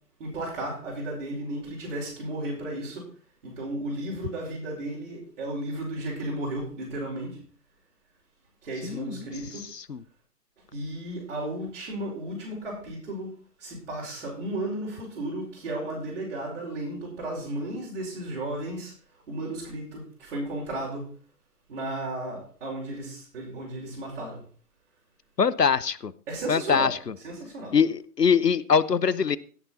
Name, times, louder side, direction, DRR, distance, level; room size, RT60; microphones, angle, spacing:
voice 1, 0.2-3.1 3.4-7.4 8.6-9.7 10.7-21.0 21.7-24.4 26.3-26.9 27.2-27.8, right 1 dB, 50° right, 4.9 m, -34 dB
voice 2, 8.8-9.2 9.7-10.0 25.4-26.1 26.5-27.1 27.7-29.4, left 6 dB, 85° left, 0.8 m, -23 dB
17.0 x 6.7 x 4.2 m
figure-of-eight pair, 135°, 47 cm